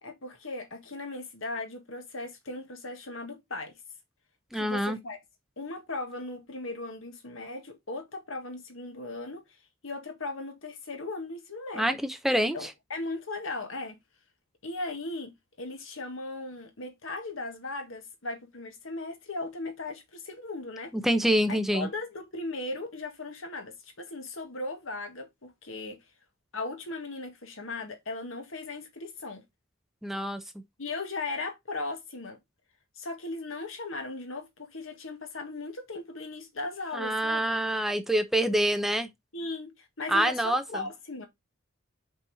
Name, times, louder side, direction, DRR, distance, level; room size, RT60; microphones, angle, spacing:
voice 1, 0.0-3.7 4.5-5.2 5.6-9.4 9.8-12.0 12.5-14.0 14.6-20.9 21.5-26.0 26.5-29.4 30.8-32.4 33.0-37.4 39.3-41.3, left 2 dB, 80° left, 1.8 m, -37 dB
voice 2, 4.5-5.0 11.8-12.6 21.0-21.9 30.0-30.4 36.9-39.1 40.1-40.6, right 1 dB, ahead, 0.7 m, -26 dB
5.6 x 5.4 x 4.1 m
head